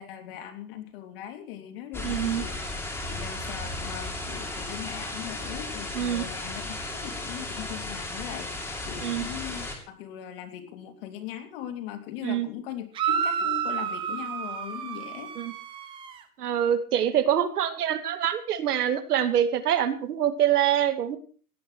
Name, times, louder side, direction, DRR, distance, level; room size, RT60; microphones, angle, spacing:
voice 1, 0.0-2.8 3.1-15.3, left 10 dB, 40° left, 6 dB, 2.8 m, -40 dB
sound 1, 1.9-9.8, left 2 dB, 5° left, 2.8 m, -35 dB
voice 2, 2.0-2.4 5.9-6.2 9.0-9.3 12.2-12.5 15.4-15.5 16.4-21.2, right 10 dB, 85° right, 10 dB, 2.6 m, -25 dB
sound 2, 12.9-16.2, right 8 dB, 10° right, 0.8 m, -30 dB
17.5 x 10.5 x 6.3 m, 0.43 s
supercardioid pair, 175°, 45 cm